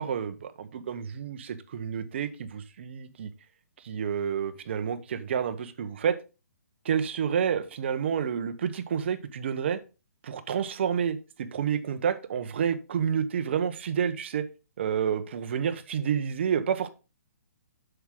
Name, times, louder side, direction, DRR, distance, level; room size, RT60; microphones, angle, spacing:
voice 1, 0.0-3.3 3.8-6.2 6.8-9.8 10.2-14.4 14.8-16.9, right 7 dB, 45° right, 10 dB, 0.9 m, -29 dB
7.9 x 6.3 x 3.7 m, 0.30 s
hypercardioid pair, 165°, 9 cm